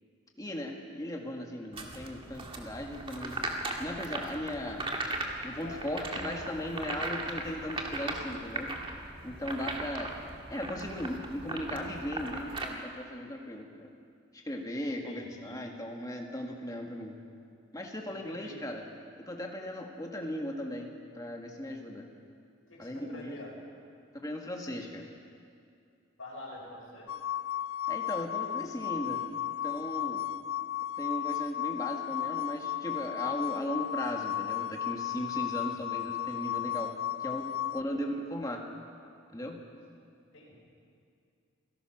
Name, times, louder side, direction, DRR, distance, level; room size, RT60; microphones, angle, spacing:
voice 1, 0.4-3.4 3.8-4.8 5.4-8.7 9.2-10.2 10.5-13.9 14.3-17.1 17.7-18.8 19.2-22.1 22.8-23.3 24.1-25.1 27.9-29.2 29.6-30.2 31.0-36.9 37.2-38.6 39.3-39.6, left 1 dB, 15° left, 1 dB, 1.8 m, -37 dB
sound 1, 1.7-12.6, right 2 dB, 25° right, 1.7 m, -38 dB
voice 2, 5.6-6.5 14.8-15.6 18.1-18.5 22.7-23.6 26.2-27.1 35.6-36.1 37.6-38.0 40.3-40.6, left 1 dB, 65° left, -5 dB, 6.3 m, -47 dB
sound 2, 27.1-37.8, left 12 dB, 80° left, 0.5 m, -34 dB
27.0 x 16.5 x 6.1 m, 2.4 s
head